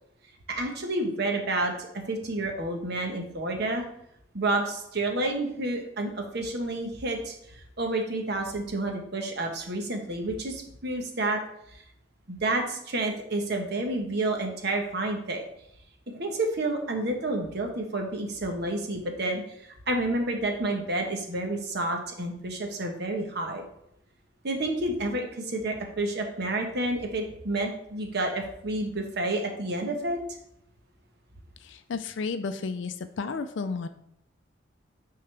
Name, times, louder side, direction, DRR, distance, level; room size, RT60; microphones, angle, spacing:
voice 1, 0.5-3.8 4.3-11.4 11.7-11.8 12.3-15.4 16.1-23.6 24.4-30.2, right 2 dB, 55° right, 3 dB, 1.1 m, -30 dB
voice 2, 31.6-33.9, left 4 dB, 65° left, 10 dB, 0.4 m, -32 dB
9.3 x 3.8 x 3.3 m, 0.76 s
head